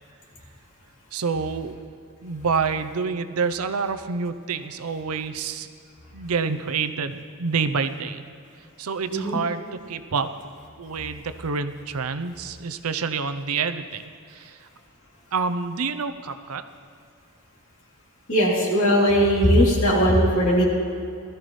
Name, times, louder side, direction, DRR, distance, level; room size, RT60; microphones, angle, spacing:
voice 1, 1.1-1.8 2.2-5.7 6.1-8.2 8.8-10.3 10.8-14.7 15.3-16.6, right 5 dB, 80° right, 10 dB, 0.7 m, -28 dB
voice 2, 18.3-20.6, equal, 60° left, -4 dB, 3.1 m, -19 dB
20.5 x 13.5 x 3.2 m, 2.4 s
head